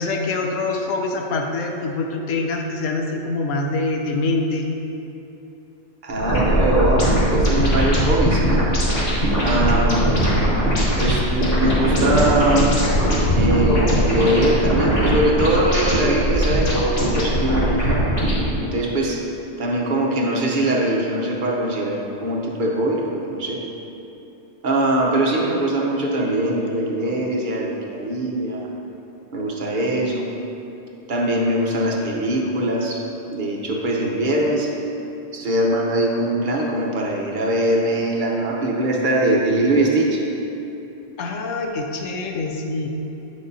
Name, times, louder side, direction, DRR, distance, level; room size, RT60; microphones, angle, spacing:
voice 1, 0.0-4.7 41.2-42.9, left 3 dB, 80° left, 2 dB, 1.1 m, -25 dB
voice 2, 6.0-8.6 9.4-10.3 11.0-12.7 13.3-18.0 18.6-19.2 19.6-23.6 24.6-28.7 29.3-30.3 31.1-34.7 35.3-40.2, right 1 dB, 45° right, -2 dB, 0.9 m, -22 dB
sound 1, 6.2-18.5, equal, 50° left, 1.6 m, -20 dB
8.4 x 6.4 x 2.7 m, 2.9 s
omnidirectional pair, 1.3 m